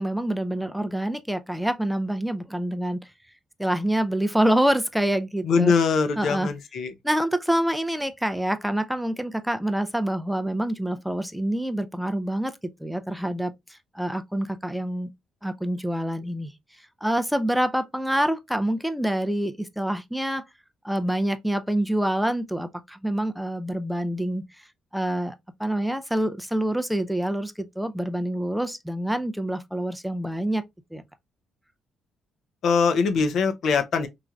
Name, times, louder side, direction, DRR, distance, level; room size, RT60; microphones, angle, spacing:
voice 1, 0.0-3.1 3.6-5.7 6.2-6.5 7.0-15.1 15.4-16.5 17.0-20.4 20.8-24.7 24.9-30.6 30.9-31.0, right 1 dB, ahead, 0.3 m, -26 dB
voice 2, 5.4-6.9 32.6-34.1, left 5 dB, 65° left, 0.5 m, -22 dB
3.1 x 2.5 x 2.2 m
cardioid pair, 90°, 0 cm